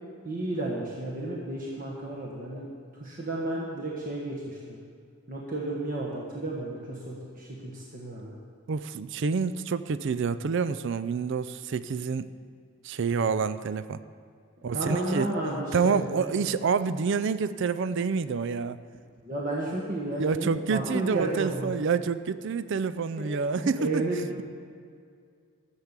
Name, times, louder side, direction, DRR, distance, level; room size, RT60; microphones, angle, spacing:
voice 1, 0.2-2.7 3.0-4.8 5.3-8.3 14.7-16.4 19.2-21.7 23.2-23.3 23.6-24.4, right 2 dB, 40° right, -3 dB, 1.4 m, -32 dB
voice 2, 8.7-12.3 12.8-14.0 14.6-15.3 15.7-18.8 20.2-24.0, right 5 dB, 55° right, 14 dB, 0.4 m, -28 dB
13.0 x 7.3 x 8.2 m, 2.2 s
head